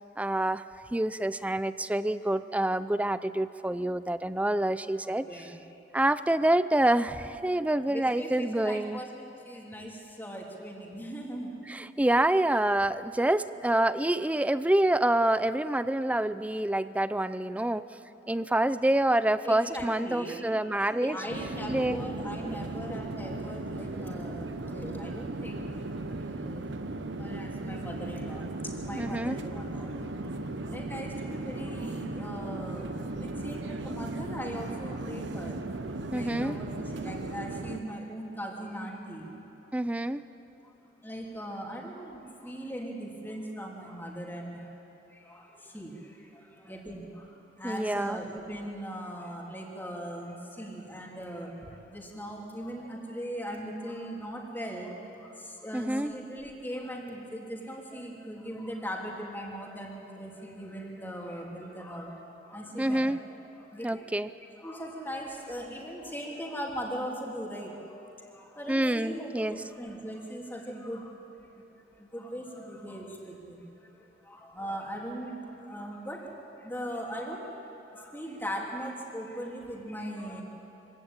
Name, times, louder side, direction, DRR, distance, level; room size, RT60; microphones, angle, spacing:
voice 1, 0.2-0.6 0.9-5.5 5.9-9.0 11.7-17.8 18.3-21.2 21.7-22.0 29.0-29.4 36.1-36.6 39.7-40.2 47.6-48.2 55.7-56.1 62.8-63.2 63.8-64.3 68.7-69.6, right 1 dB, 10° right, 14 dB, 0.4 m, -27 dB
voice 2, 5.0-5.6 7.9-9.1 9.4-11.6 19.4-20.5 20.9-25.7 26.0-26.7 27.2-39.5 40.6-40.7 41.0-63.1 63.6-64.1 64.6-71.2 71.5-71.6 71.9-80.4, equal, 10° left, -1 dB, 2.9 m, -40 dB
sound 1, 21.3-37.8, right 2 dB, 75° right, 1.0 m, -36 dB
24.5 x 16.5 x 8.8 m, 2.9 s
head